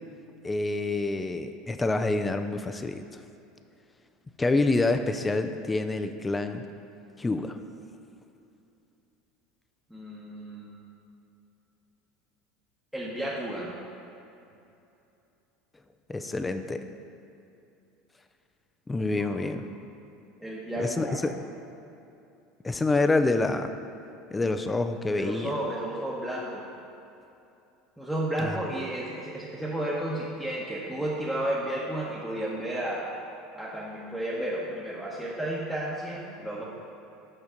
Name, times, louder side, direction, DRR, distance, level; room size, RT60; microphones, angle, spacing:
voice 1, 0.4-3.2 4.4-6.7 7.2-7.6 16.1-16.9 18.9-19.6 20.8-21.4 22.6-23.7 24.3-25.5 28.4-28.6, left 2 dB, 15° left, 8 dB, 0.5 m, -27 dB
voice 2, 9.9-10.9 12.9-13.7 19.2-19.4 20.4-21.3 25.1-26.7 28.0-33.1 33.5-36.6, right 1 dB, ahead, -7 dB, 1.2 m, -32 dB
6.9 x 5.7 x 5.2 m, 2.8 s
hypercardioid pair, 90°, 0 cm